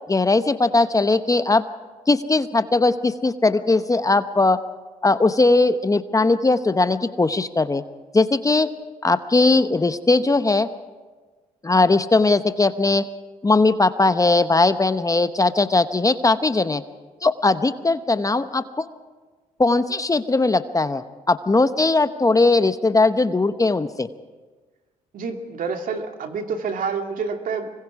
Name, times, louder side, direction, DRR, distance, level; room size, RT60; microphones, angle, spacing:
voice 1, 0.1-1.6 2.1-4.6 5.0-7.8 8.1-8.7 9.0-10.7 11.6-13.0 13.4-16.8 17.2-18.9 19.6-24.1, left 3 dB, 20° left, 11 dB, 0.9 m, -19 dB
voice 2, 25.1-27.7, right 5 dB, 65° right, 4 dB, 2.3 m, -28 dB
25.0 x 22.0 x 4.8 m, 1.4 s
supercardioid pair, 60°, 15 cm